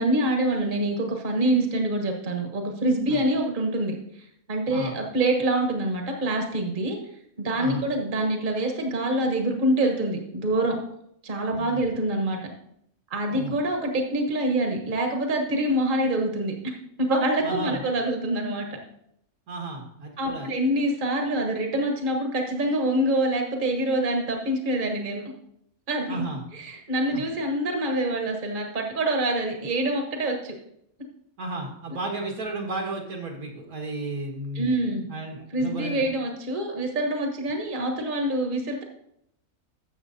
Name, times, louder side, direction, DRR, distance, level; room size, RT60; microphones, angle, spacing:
voice 1, 0.0-4.0 4.5-7.0 7.4-10.8 11.2-12.5 13.1-18.7 20.2-25.2 25.9-26.3 26.5-30.5 34.5-35.1 35.5-38.8, right 1 dB, 35° right, 2 dB, 1.4 m, -25 dB
voice 2, 17.4-17.9 19.5-20.5 26.1-26.4 27.1-27.2 31.4-34.7 35.1-36.1, right 2 dB, 75° right, 1 dB, 2.2 m, -33 dB
13.0 x 7.1 x 2.7 m, 0.73 s
omnidirectional pair, 1.5 m